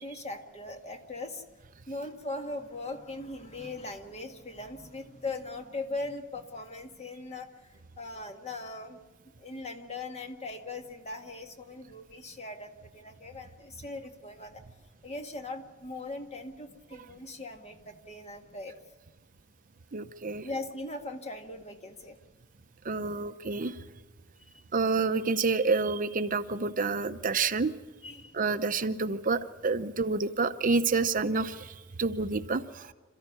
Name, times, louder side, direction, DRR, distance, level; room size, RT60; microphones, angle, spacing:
voice 1, 0.0-1.4 1.9-9.0 9.4-14.6 15.0-18.7 20.4-22.2 28.0-28.4, left 2 dB, 35° left, 5 dB, 1.8 m, -40 dB
voice 2, 19.9-20.5 22.8-23.8 24.7-27.7 28.3-32.9, right 4 dB, 45° right, 10 dB, 0.7 m, -28 dB
27.5 x 14.0 x 9.7 m, 1.2 s
head